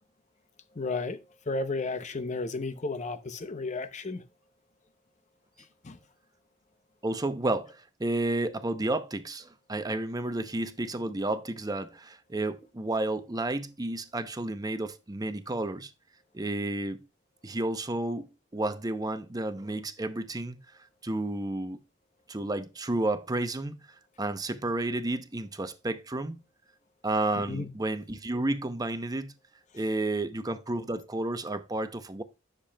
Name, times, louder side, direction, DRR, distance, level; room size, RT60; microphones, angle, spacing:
voice 1, 0.7-1.2 1.5-4.2 5.8-6.0 27.4-27.7, left 3 dB, 35° left, 0.7 m, -33 dB
voice 2, 7.0-15.9 16.3-17.0 17.4-20.6 21.0-21.8 22.3-23.8 24.2-26.4 27.0-29.3 29.7-32.2, right 2 dB, 20° right, 0.6 m, -31 dB
10.0 x 6.7 x 2.2 m
head